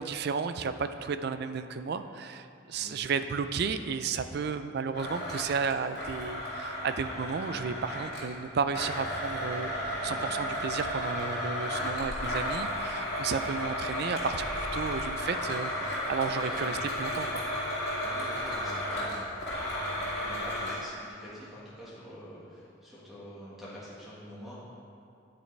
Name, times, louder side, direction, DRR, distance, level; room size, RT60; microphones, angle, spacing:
voice 1, 0.0-17.4, right 5 dB, 55° right, 10 dB, 0.4 m, -33 dB
Domestic sounds home sounds, 4.9-8.3 8.7-20.7, left 1 dB, 50° left, 2.4 m, -33 dB
voice 2, 16.4-16.8 18.0-24.5, equal, ahead, -10 dB, 1.4 m, -46 dB
9.6 x 9.2 x 3.3 m, 2.5 s
head